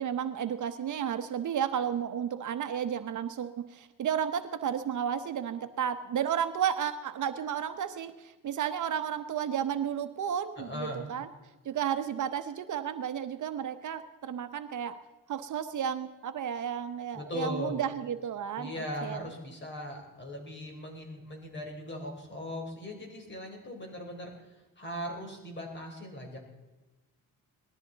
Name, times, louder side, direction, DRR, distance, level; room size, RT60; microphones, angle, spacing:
voice 1, 0.0-11.3 11.6-15.0 15.3-19.3, right 9 dB, 60° right, 9 dB, 0.9 m, -32 dB
voice 2, 10.6-11.1 17.1-17.8 18.6-24.3 24.8-26.4, left 1 dB, 30° left, 1 dB, 3.8 m, -39 dB
19.5 x 13.5 x 4.0 m, 1.2 s
cardioid pair, 105°, 34 cm